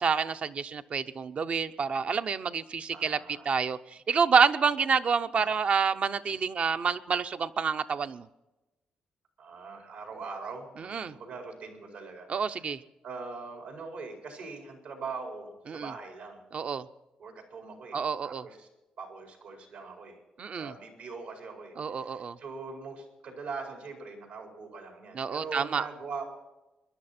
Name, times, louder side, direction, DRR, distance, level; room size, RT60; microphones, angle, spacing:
voice 1, 0.0-3.2 3.4-8.3 10.8-11.1 12.3-12.8 15.7-15.9 16.5-16.9 17.9-18.4 20.4-20.7 21.8-22.4 25.1-25.9, right 6 dB, 50° right, 11 dB, 0.7 m, -28 dB
voice 2, 2.9-3.5 5.4-5.5 9.4-12.7 13.0-16.4 17.2-18.7 19.0-20.2 20.6-26.3, right 4 dB, 85° right, 2 dB, 4.7 m, -42 dB
23.0 x 11.0 x 4.3 m, 1.0 s
cardioid pair, 85°, 3 cm